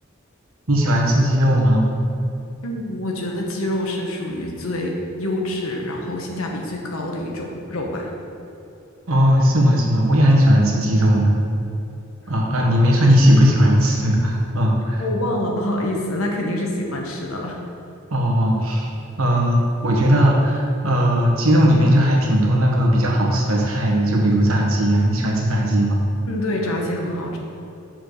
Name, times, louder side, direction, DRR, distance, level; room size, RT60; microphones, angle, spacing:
voice 1, 0.7-2.0 9.1-11.3 12.3-15.0 18.1-18.9 19.2-26.0, equal, 80° right, -2 dB, 1.4 m, -17 dB
voice 2, 2.6-8.1 15.0-17.6 26.3-27.4, left 1 dB, 85° left, 0 dB, 1.2 m, -26 dB
6.3 x 4.5 x 6.6 m, 2.8 s
head